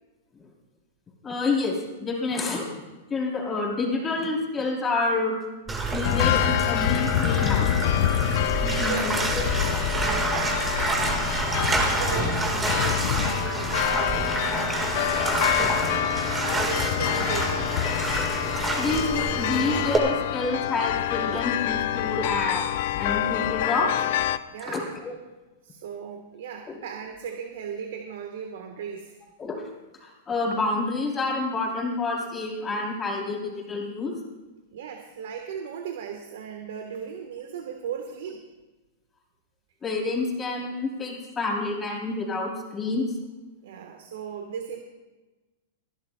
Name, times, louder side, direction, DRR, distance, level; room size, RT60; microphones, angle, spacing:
voice 1, 1.2-2.7 3.1-5.4 5.9-7.7 8.6-9.4 18.2-22.7 23.0-23.9 24.6-25.1 26.7-26.8 29.4-29.6 30.0-34.2 39.8-43.0, left 3 dB, 15° left, -1 dB, 3.3 m, -28 dB
Bathtub (filling or washing), 5.7-20.0, right 2 dB, 10° right, 1.6 m, -28 dB
sound 1, 6.0-24.4, left 12 dB, 60° left, 0.5 m, -27 dB
voice 2, 8.8-17.8 24.5-24.9 25.6-29.2 34.7-38.4 43.6-44.8, right 7 dB, 70° right, 4 dB, 1.3 m, -37 dB
28.5 x 11.5 x 2.3 m, 1.1 s
hypercardioid pair, 145°, 0 cm